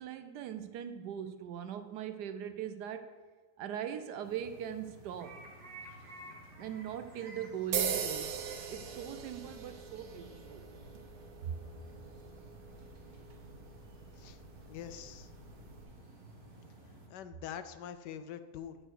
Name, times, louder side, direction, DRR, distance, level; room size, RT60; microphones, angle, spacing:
voice 1, 0.0-3.1 3.6-5.4 6.6-8.4 8.7-10.7 11.4-11.6, right 9 dB, 75° right, 9 dB, 1.2 m, -40 dB
sound 1, 4.2-17.1, right 1 dB, 35° right, 1.4 m, -53 dB
sound 2, 7.7-15.8, right 7 dB, 90° right, 1.5 m, -41 dB
voice 2, 14.7-15.3 17.1-18.8, left 9 dB, 80° left, 11 dB, 1.2 m, -44 dB
8.8 x 5.0 x 6.4 m, 1.4 s
omnidirectional pair, 1.9 m